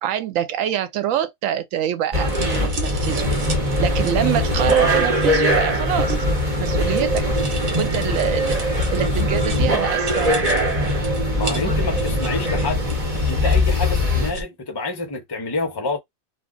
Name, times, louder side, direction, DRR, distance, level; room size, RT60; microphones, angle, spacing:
voice 1, 0.0-3.3 3.8-6.2 6.6-7.3 7.8-10.5, right 10 dB, 80° right, 1.0 m, -25 dB
sound 1, 2.1-14.3, left 1 dB, 30° right, 1.1 m, -21 dB
sound 2, 2.3-14.4, right 1 dB, 50° right, 0.8 m, -32 dB
voice 2, 11.4-12.8 13.2-16.0, left 3 dB, 25° left, 0.7 m, -27 dB
2.4 x 2.3 x 3.7 m
omnidirectional pair, 1.4 m